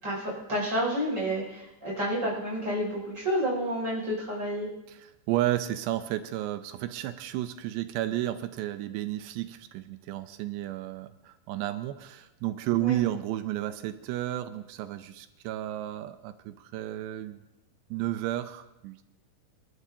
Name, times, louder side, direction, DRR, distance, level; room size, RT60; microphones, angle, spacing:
voice 1, 0.0-4.7 12.8-13.0, equal, 25° right, -4 dB, 6.2 m, -30 dB
voice 2, 4.9-17.4 17.9-19.1, right 14 dB, 80° right, 10 dB, 2.7 m, -32 dB
27.5 x 12.5 x 2.8 m, 0.95 s
omnidirectional pair, 5.2 m